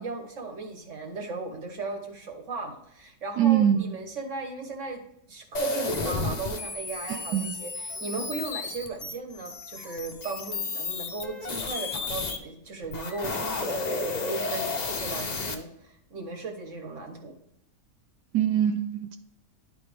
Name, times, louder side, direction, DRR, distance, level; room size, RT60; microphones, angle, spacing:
voice 1, 0.0-5.0 5.3-17.4, right 3 dB, 50° right, 4 dB, 1.5 m, -37 dB
voice 2, 3.4-3.9 7.1-7.5 18.3-19.2, right 10 dB, 75° right, 6 dB, 1.2 m, -23 dB
sound 1, 5.5-12.4 12.8-15.5, left 3 dB, 45° left, 0.5 m, -32 dB
11.0 x 4.2 x 3.3 m, 0.77 s
omnidirectional pair, 1.8 m